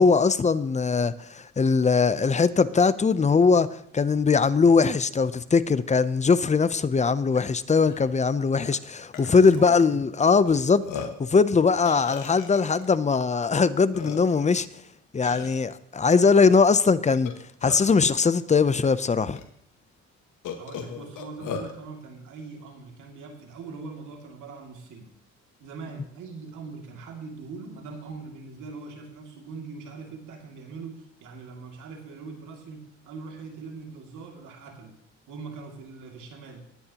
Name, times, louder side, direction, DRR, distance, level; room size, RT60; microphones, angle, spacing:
voice 1, 0.0-14.7 15.1-17.3 17.6-19.4, left 5 dB, 25° left, 0.6 m, -21 dB
Burping eructation, 7.4-7.5 7.8-8.0 8.7-8.8 9.1-9.8 10.5-10.6 10.8-11.3 11.9-12.9 13.5-13.6 13.9-14.5 15.2-15.6 17.1-18.0 18.8-18.9 19.4-19.5 20.4-21.7, left 6 dB, 85° left, 1.6 m, -37 dB
voice 2, 9.4-10.0 20.6-25.1 25.6-34.9 35.3-36.6, right 4 dB, 85° right, 2.5 m, -41 dB
19.5 x 9.5 x 2.9 m
cardioid pair, 90°, 30 cm